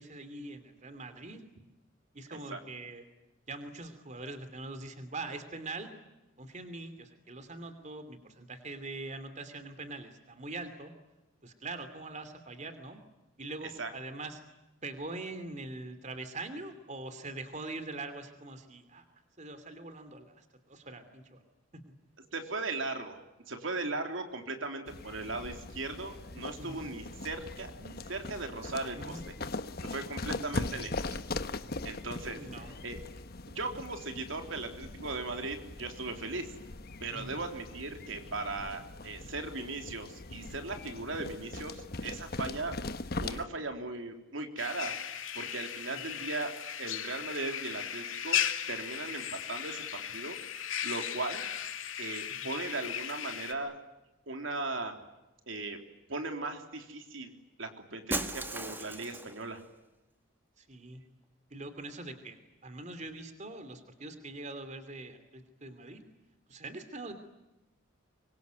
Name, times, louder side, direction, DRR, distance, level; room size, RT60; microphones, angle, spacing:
voice 1, 0.0-1.4 2.1-3.0 3.5-5.9 6.4-10.9 11.4-13.0 13.4-14.4 14.8-19.0 19.4-21.4 21.7-21.8 26.6-26.9 28.9-29.2 30.2-30.6 32.3-32.7 37.1-37.3 45.9-46.1 52.4-52.5 60.6-61.0 61.5-66.0 66.5-67.1, right 2 dB, 35° right, 10 dB, 2.9 m, -43 dB
voice 2, 22.3-29.2 29.8-31.2 31.8-32.5 32.8-33.0 33.5-36.5 37.0-42.8 43.2-45.0 45.3-48.4 48.7-50.4 50.8-51.4 52.0-53.8 54.3-55.0 55.5-55.8 56.1-57.3 57.6-59.6, right 3 dB, 75° right, 5 dB, 3.5 m, -38 dB
sound 1, 24.9-43.5, left 2 dB, 50° left, 1.2 m, -41 dB
sound 2, 44.6-53.5, left 9 dB, 80° left, 2.6 m, -36 dB
Shatter, 58.1-59.4, right 2 dB, 10° right, 1.7 m, -36 dB
26.0 x 23.5 x 9.4 m, 1.0 s
head